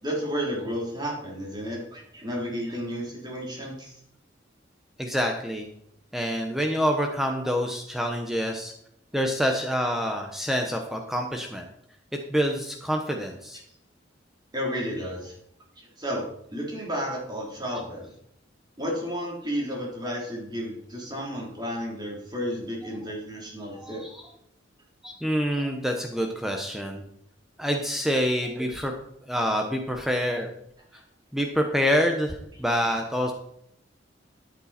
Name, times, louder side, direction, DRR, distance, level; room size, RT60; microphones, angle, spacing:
voice 1, 0.0-4.0 14.5-15.3 15.8-16.2 16.5-18.1 18.8-24.0, equal, 20° right, -3 dB, 3.5 m, -32 dB
voice 2, 5.0-5.7 6.1-8.7 9.1-11.6 12.3-13.6 23.8-24.2 25.0-27.0 27.6-28.9 29.3-30.5 31.3-33.3, equal, ahead, 3 dB, 0.9 m, -26 dB
13.0 x 8.4 x 4.3 m, 0.72 s
head